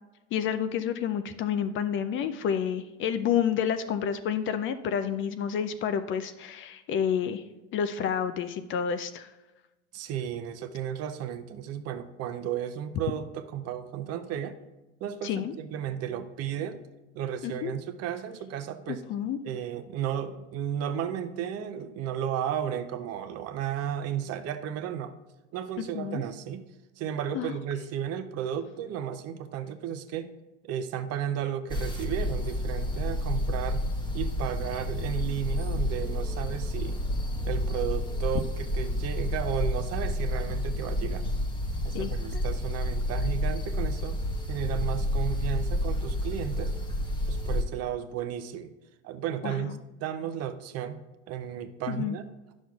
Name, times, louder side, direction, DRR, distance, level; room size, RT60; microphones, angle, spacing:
voice 1, 0.3-7.4 7.7-9.3 15.2-15.5 17.4-17.7 18.9-19.4 25.9-26.2 27.3-27.6 41.9-42.4 49.4-49.8 51.9-52.2, left 8 dB, 35° left, 10 dB, 0.4 m, -29 dB
voice 2, 9.9-14.6 15.0-16.8 17.1-19.0 19.4-25.1 25.5-26.7 27.0-30.3 30.6-33.9 34.1-37.0 37.5-41.3 41.8-44.2 44.5-46.7 47.3-48.7 49.0-51.0 51.3-52.2, right 9 dB, 45° right, 9 dB, 0.6 m, -34 dB
sound 1, 31.7-47.6, left 1 dB, 15° left, 1.0 m, -30 dB
10.0 x 6.2 x 2.3 m, 1.1 s
hypercardioid pair, 90°, 36 cm